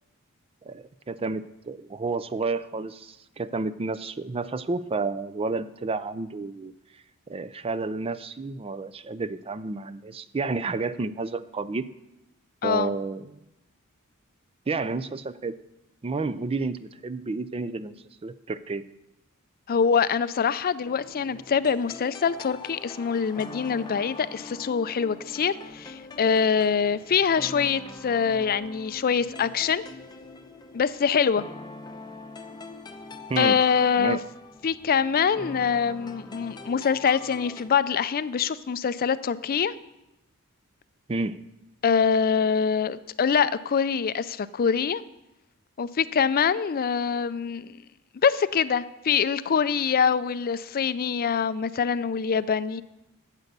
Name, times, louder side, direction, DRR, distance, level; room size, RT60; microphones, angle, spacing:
voice 1, 0.6-6.7 7.3-11.9 12.6-13.4 14.7-15.6 16.0-18.0 18.2-18.8 33.3-33.6 34.0-34.2 41.1-41.4, right 3 dB, 25° right, 14 dB, 0.4 m, -30 dB
voice 2, 19.7-29.8 30.7-31.4 33.4-34.2 34.6-39.7 41.8-45.0 45.8-47.8 48.2-52.8, left 6 dB, 40° left, 15 dB, 0.4 m, -24 dB
sound 1, 20.8-37.7, left 3 dB, 20° left, 0.8 m, -43 dB
12.0 x 8.3 x 6.7 m, 0.90 s
head